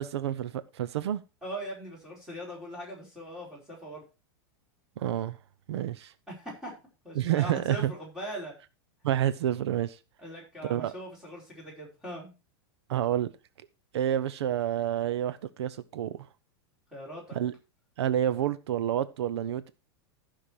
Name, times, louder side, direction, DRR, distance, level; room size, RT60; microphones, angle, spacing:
voice 1, 0.0-1.2 5.0-5.4 5.7-6.1 7.2-7.9 9.0-10.0 10.6-10.9 12.9-13.3 13.9-16.1 17.3-17.5 18.0-19.7, right 11 dB, 85° right, 0.8 m, -29 dB
voice 2, 1.4-4.0 6.3-6.7 7.0-8.6 10.2-12.3 16.9-17.4, right 1 dB, 5° right, 5.1 m, -40 dB
14.0 x 5.9 x 4.8 m
supercardioid pair, 170°, 14 cm